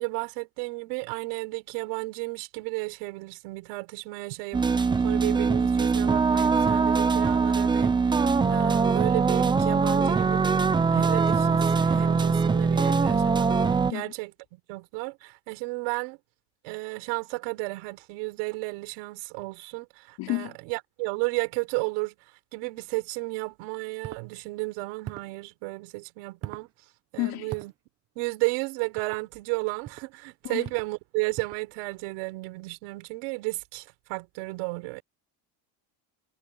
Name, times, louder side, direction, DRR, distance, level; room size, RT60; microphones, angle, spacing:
voice 1, 0.0-4.6 5.0-8.2 8.5-10.5 10.9-16.2 16.6-22.2 22.5-26.7 27.1-27.7 28.2-35.0, right 26 dB, 75° right, 5.5 m, -33 dB
sound 1, 4.5-13.9, right 5 dB, 10° right, 0.6 m, -22 dB
voice 2, 20.2-20.6 27.2-27.5 30.4-30.7, left 18 dB, 50° left, 3.2 m, -31 dB
sound 2, 24.0-24.3 25.0-25.4 26.4-26.7 27.5-27.7 29.0-29.2 29.8-30.1 30.6-30.9 31.3-31.7, right 12 dB, 30° right, 1.1 m, -40 dB
cardioid pair, 175°, 47 cm